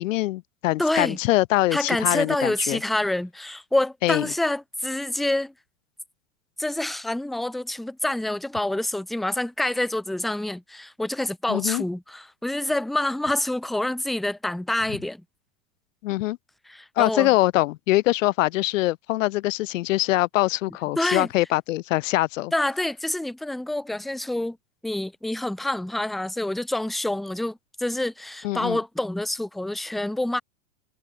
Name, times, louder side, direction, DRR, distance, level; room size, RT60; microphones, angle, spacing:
voice 1, 0.0-2.8 4.0-4.2 11.5-11.8 16.0-16.4 17.0-22.5 28.4-28.8, left 18 dB, 65° left, 0.8 m, -23 dB
voice 2, 0.8-1.2 1.7-5.5 6.6-15.2 16.7-17.3 21.0-21.3 22.5-24.6 24.8-30.4, left 1 dB, ahead, 0.4 m, -27 dB
supercardioid pair, 145°, 41 cm